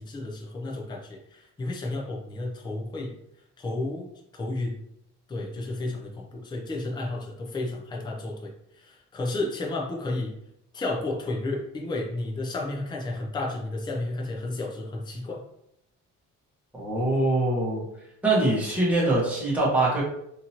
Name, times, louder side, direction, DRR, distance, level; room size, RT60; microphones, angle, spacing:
voice 1, 0.0-3.1 3.6-4.1 4.3-4.8 5.3-10.3 10.7-15.4, left 2 dB, 15° left, -1 dB, 0.5 m, -32 dB
voice 2, 16.8-17.8 18.2-20.0, right 2 dB, 5° right, -7 dB, 1.3 m, -23 dB
3.8 x 2.9 x 2.8 m, 0.77 s
cardioid pair, 165°, 31 cm